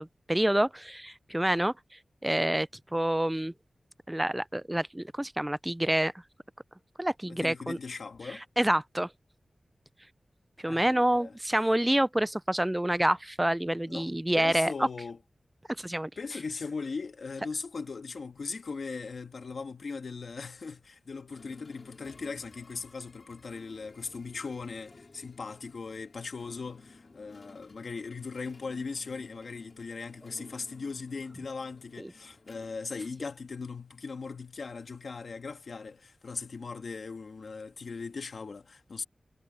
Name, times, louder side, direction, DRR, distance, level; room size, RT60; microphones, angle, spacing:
voice 1, 0.0-1.7 2.2-3.5 4.1-6.1 7.0-7.8 8.3-9.1 10.6-14.7 15.8-16.1 32.0-32.1, right 1 dB, 10° right, 0.3 m, -27 dB
voice 2, 7.3-8.4 10.7-11.3 13.9-14.1 14.4-15.2 16.2-39.0, left 4 dB, 75° left, 1.9 m, -39 dB
sound 1, 21.3-33.6, left 3 dB, 50° left, 4.3 m, -56 dB
wide cardioid pair, 105°, 0 cm